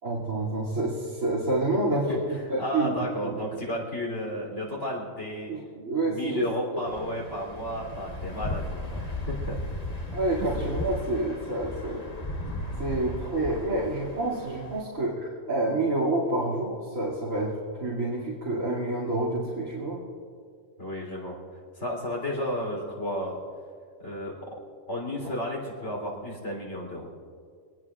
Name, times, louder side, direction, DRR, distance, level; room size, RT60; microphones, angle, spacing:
voice 1, 0.0-2.0 2.5-2.9 3.2-3.6 5.5-6.4 10.1-12.0 12.8-20.0, right 2 dB, 75° right, -6 dB, 3.0 m, -28 dB
voice 2, 1.9-5.5 6.0-9.6 10.4-10.5 20.8-21.4 21.7-23.4 24.0-24.5 24.9-27.1, left 1 dB, 60° left, -3 dB, 3.7 m, -33 dB
sound 1, 6.9-14.8, left 1 dB, 30° left, 1.4 m, -35 dB
24.0 x 19.5 x 2.4 m, 2.1 s
omnidirectional pair, 1.4 m